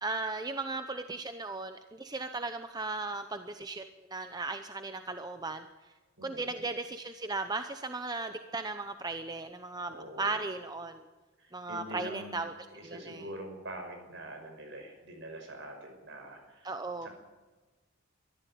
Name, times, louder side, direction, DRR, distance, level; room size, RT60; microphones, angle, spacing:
voice 1, 0.0-5.6 6.2-11.0 11.5-12.5 12.8-13.2 16.6-17.1, right 3 dB, 20° right, 8 dB, 0.7 m, -36 dB
voice 2, 6.2-6.6 9.9-10.5 11.4-12.4 12.7-16.7 17.0-17.1, right 1 dB, 55° right, 5 dB, 5.6 m, -45 dB
23.5 x 14.0 x 9.3 m, 1.3 s
head